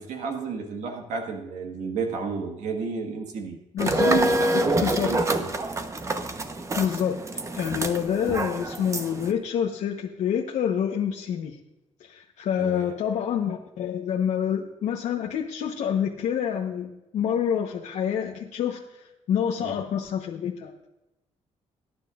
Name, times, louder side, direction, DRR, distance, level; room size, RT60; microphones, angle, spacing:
voice 1, 0.0-3.6 4.0-5.5 12.6-12.9 19.6-19.7, right 5 dB, 90° right, 3 dB, 1.6 m, -31 dB
voice 2, 3.7-5.3 6.7-7.2 7.5-11.6 12.0-20.7, left 8 dB, 85° left, 0 dB, 1.1 m, -27 dB
sound 1, 3.8-9.3, right 1 dB, 25° right, 1.0 m, -27 dB
20.5 x 9.9 x 2.5 m, 0.97 s
cardioid pair, 120°, 12 cm